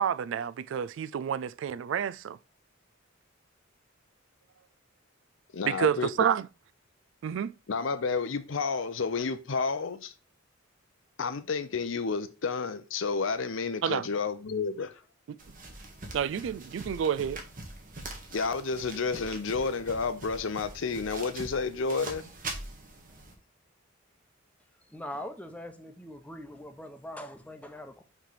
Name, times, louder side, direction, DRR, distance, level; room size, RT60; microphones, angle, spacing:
voice 1, 0.0-2.4 5.6-6.5 7.2-7.5 13.8-14.0 15.3-15.4 16.1-17.4, right 8 dB, 65° right, 0.3 m, -29 dB
voice 2, 5.5-6.1 7.7-10.1 11.2-14.9 18.3-22.3, left 4 dB, 70° left, 0.6 m, -31 dB
sound 1, 15.4-23.3, right 2 dB, 40° right, 1.6 m, -43 dB
voice 3, 24.9-28.0, left 1 dB, 5° left, 0.9 m, -42 dB
5.9 x 3.3 x 5.8 m
head